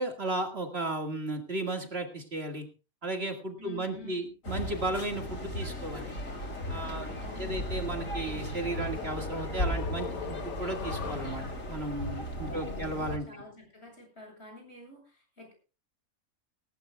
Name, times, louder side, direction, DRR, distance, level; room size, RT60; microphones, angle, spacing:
voice 1, 0.0-2.7 3.0-6.1 6.7-7.1 7.4-11.4 11.7-13.3, right 2 dB, 45° right, 4 dB, 2.3 m, -34 dB
voice 2, 3.6-4.3 6.8-7.7 12.3-12.9 13.3-15.5, left 2 dB, 50° left, 1 dB, 8.5 m, -49 dB
sound 1, 4.4-13.2, left 1 dB, 70° left, 3.5 m, -36 dB
sound 2, 5.5-11.2, right 2 dB, 10° right, 1.8 m, -45 dB
sound 3, 8.0-11.7, left 7 dB, 85° left, 1.4 m, -42 dB
18.5 x 18.0 x 2.3 m, 0.32 s
omnidirectional pair, 1.4 m